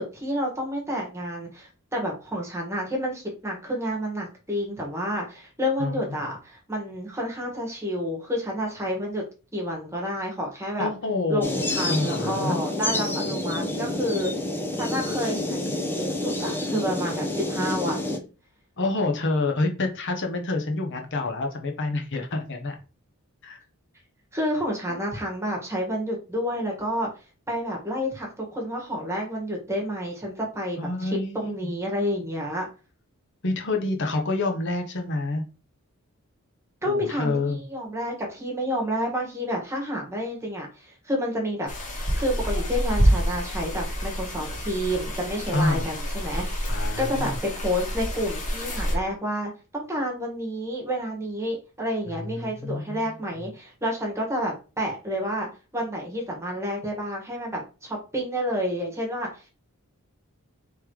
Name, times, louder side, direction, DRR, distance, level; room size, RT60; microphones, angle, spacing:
voice 1, 0.0-9.2 9.5-10.9 11.3-14.3 14.7-18.2 24.3-27.1 27.5-32.7 36.8-41.7 42.1-46.6 47.0-59.5, equal, 10° right, -1 dB, 1.5 m, -29 dB
voice 2, 10.8-12.6 18.8-22.8 23.4-23.6 30.8-31.7 33.4-35.4 36.9-37.6 45.5-45.9 46.7-47.4 52.1-53.0, left 2 dB, 55° left, 4 dB, 0.8 m, -28 dB
sound 1, 11.4-18.2, left 1 dB, 10° left, 0.6 m, -28 dB
sound 2, 41.7-49.0, equal, 35° left, 1.5 m, -27 dB
3.6 x 3.2 x 4.6 m, 0.33 s
head